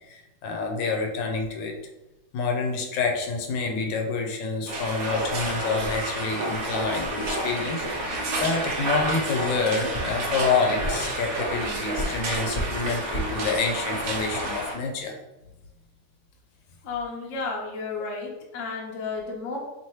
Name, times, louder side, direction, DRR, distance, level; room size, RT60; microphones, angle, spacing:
voice 1, 0.1-1.7 2.3-15.2, left 4 dB, 85° left, 2 dB, 1.4 m, -28 dB
sound 1, 4.7-14.8, right 1 dB, 60° right, 1.1 m, -30 dB
sound 2, 9.9-15.3, equal, 35° left, 0.7 m, -37 dB
voice 2, 16.8-19.6, left 4 dB, 50° left, -1 dB, 1.0 m, -32 dB
4.2 x 3.3 x 3.1 m, 1.0 s
omnidirectional pair, 1.9 m